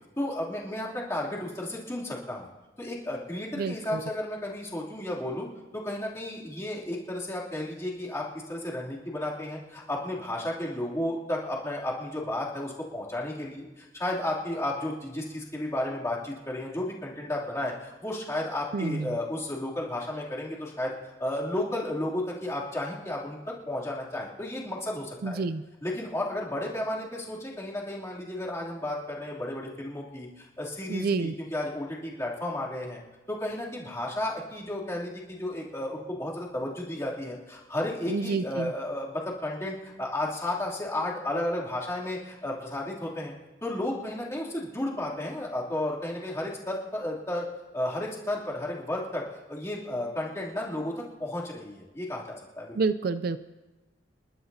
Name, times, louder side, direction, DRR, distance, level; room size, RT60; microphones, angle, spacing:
voice 1, 0.2-2.5 2.8-5.5 5.7-20.9 21.2-23.4 23.7-25.4 25.8-33.0 33.3-43.3 43.6-47.5 47.7-52.8, left 1 dB, 15° left, -6 dB, 2.8 m, -33 dB
voice 2, 3.6-4.1 18.7-19.2 25.2-25.6 30.9-31.3 38.1-38.7 52.7-53.4, right 4 dB, 50° right, 12 dB, 0.4 m, -29 dB
29.0 x 12.0 x 2.7 m, 1.1 s
head